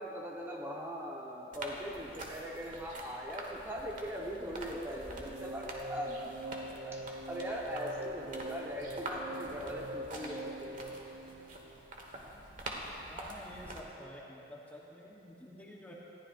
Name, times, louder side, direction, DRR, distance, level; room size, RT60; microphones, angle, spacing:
voice 1, 0.0-10.8, equal, 15° right, -3 dB, 1.3 m, -41 dB
sound 1, 1.5-13.8, right 1 dB, 50° right, 1.5 m, -46 dB
sound 2, 5.0-12.2, right 1 dB, 70° right, 0.7 m, -44 dB
voice 2, 13.1-15.9, equal, 10° left, -4 dB, 1.2 m, -49 dB
20.0 x 14.5 x 2.6 m, 3.0 s
head